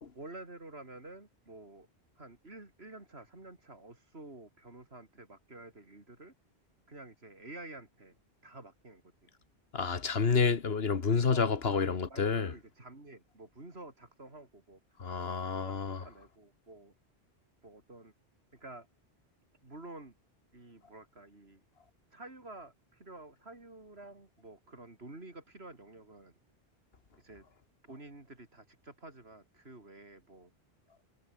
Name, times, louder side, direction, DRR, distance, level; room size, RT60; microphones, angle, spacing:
voice 1, 0.1-1.9 2.2-6.3 6.9-8.1 8.4-9.0 11.3-14.8 15.5-16.9 17.6-18.1 18.5-18.9 19.6-20.1 20.5-21.6 22.1-22.7 23.0-26.3 27.2-27.4 27.9-30.5, right 2 dB, 70° right, 4.4 m, -50 dB
voice 2, 9.7-12.5 15.0-16.0, left 5 dB, 65° left, 1.7 m, -29 dB
omnidirectional pair, 1.1 m